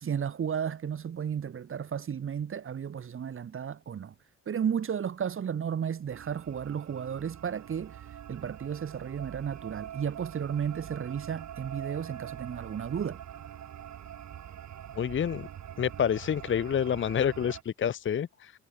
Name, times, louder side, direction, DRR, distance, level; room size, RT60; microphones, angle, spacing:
voice 1, 0.0-4.1 4.5-13.2, right 8 dB, 45° right, 1.4 m, -33 dB
sound 1, 6.1-17.6, right 10 dB, 65° right, 4.6 m, -44 dB
voice 2, 15.0-15.5 15.8-18.5, left 8 dB, 40° left, 0.8 m, -28 dB
cardioid pair, 90°, 30 cm